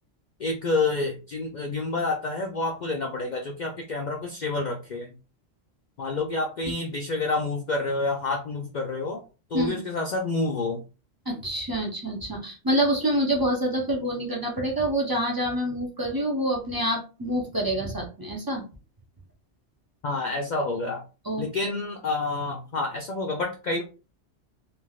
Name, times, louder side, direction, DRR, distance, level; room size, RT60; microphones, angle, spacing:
voice 1, 0.4-5.1 6.0-9.2 9.5-10.8 20.0-21.0 21.4-23.8, left 3 dB, 65° left, 2 dB, 0.4 m, -28 dB
voice 2, 11.3-18.6 21.2-21.7, right 1 dB, 30° right, 0 dB, 0.4 m, -27 dB
3.3 x 2.5 x 2.3 m, 0.33 s
omnidirectional pair, 1.3 m